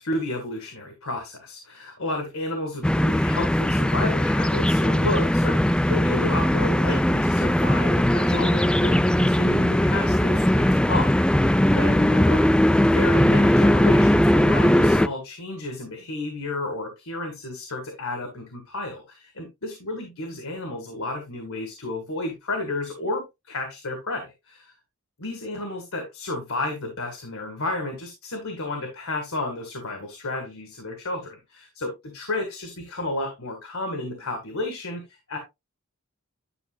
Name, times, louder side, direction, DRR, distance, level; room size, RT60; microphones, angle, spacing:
voice 1, 0.0-24.7 25.2-35.4, left 2 dB, 80° left, 1.9 m, -32 dB
sound 1, 2.8-15.1, left 1 dB, 5° left, 0.3 m, -19 dB
11.0 x 6.3 x 2.3 m
head